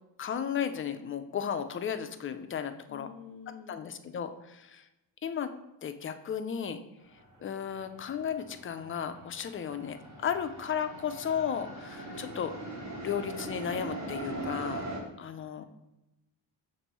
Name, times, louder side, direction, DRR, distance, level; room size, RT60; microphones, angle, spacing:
voice 1, 0.2-3.1 3.7-4.9 5.2-5.5 5.8-6.8 7.4-12.5 13.0-14.8 15.2-15.6, left 8 dB, 30° left, 9 dB, 0.4 m, -34 dB
voice 2, 2.9-3.8 12.1-12.4 15.6-15.7, left 6 dB, 90° left, 6 dB, 0.6 m, -49 dB
sound 1, 7.2-7.3 7.6-15.0, right 1 dB, 40° right, 1.4 m, -41 dB
6.7 x 2.6 x 3.0 m, 0.94 s
cardioid pair, 95°, 42 cm